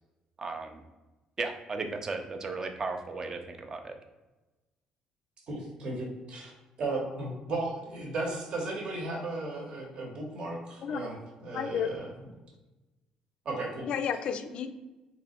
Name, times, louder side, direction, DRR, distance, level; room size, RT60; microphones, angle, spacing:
voice 1, 0.4-0.8 1.4-3.9, right 3 dB, 30° right, 5 dB, 0.5 m, -35 dB
voice 2, 5.5-6.5 6.8-12.1 13.4-13.9, right 2 dB, 50° right, 0 dB, 1.0 m, -35 dB
voice 3, 11.5-11.9 13.8-14.7, left 7 dB, 55° left, 9 dB, 0.3 m, -31 dB
3.2 x 3.0 x 4.2 m, 1.1 s
cardioid pair, 130°, 2 cm